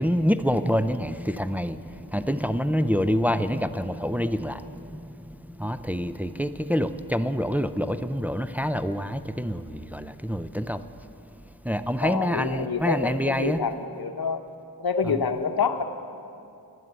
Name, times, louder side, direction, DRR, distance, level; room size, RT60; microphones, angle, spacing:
voice 1, 0.0-10.8 11.6-13.6 15.0-15.1, equal, 5° right, 10 dB, 0.4 m, -27 dB
voice 2, 12.0-14.4 14.8-15.8, left 5 dB, 65° left, 7 dB, 0.9 m, -27 dB
11.0 x 11.0 x 8.1 m, 2.7 s
wide cardioid pair, 70°, 39 cm